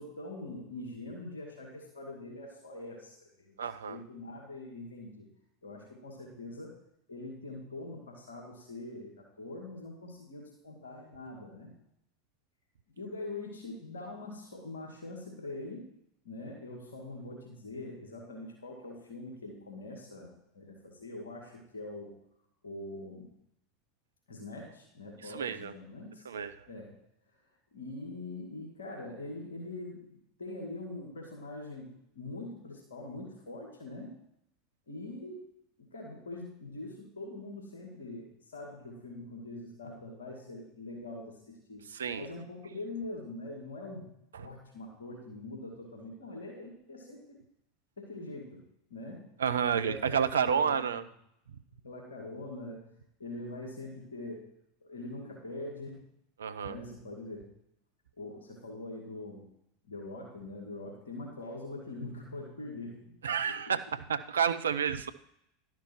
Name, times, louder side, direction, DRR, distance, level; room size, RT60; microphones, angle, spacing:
voice 1, 0.0-3.6 3.9-5.3 5.6-6.8 7.1-11.7 13.0-15.9 16.2-22.1 22.6-23.3 24.3-26.3 26.7-26.9 27.7-34.1 34.9-35.5 35.8-41.9 42.2-44.1 44.4-47.4 48.0-48.6 48.9-49.3 49.7-51.0 51.8-52.9 53.2-54.4 54.8-56.0 56.6-57.5 58.2-59.5 59.8-63.1 63.5-63.6, left 2 dB, 80° left, 0 dB, 2.1 m, -43 dB
voice 2, 3.6-4.0 25.2-25.7 26.3-26.6 41.9-42.3 44.3-44.4 49.4-51.0 56.4-56.8 63.2-65.1, right 7 dB, 75° right, 12 dB, 0.6 m, -30 dB
12.0 x 5.9 x 4.6 m, 0.76 s
figure-of-eight pair, 85°, 0 cm